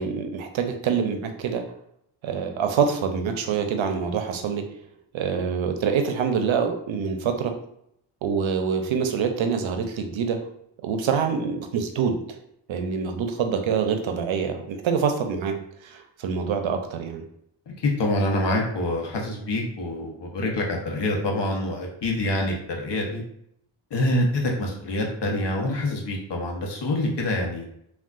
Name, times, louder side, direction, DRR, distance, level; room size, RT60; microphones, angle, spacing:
voice 1, 0.0-1.6 2.2-4.6 5.1-7.5 8.2-10.4 10.8-12.4 12.7-15.6 15.8-17.2, right 6 dB, 75° right, 6 dB, 0.6 m, -25 dB
voice 2, 17.8-23.2 23.9-27.7, left 1 dB, 60° left, 0 dB, 0.9 m, -26 dB
3.5 x 2.4 x 2.3 m, 0.73 s
cardioid pair, 55°, 47 cm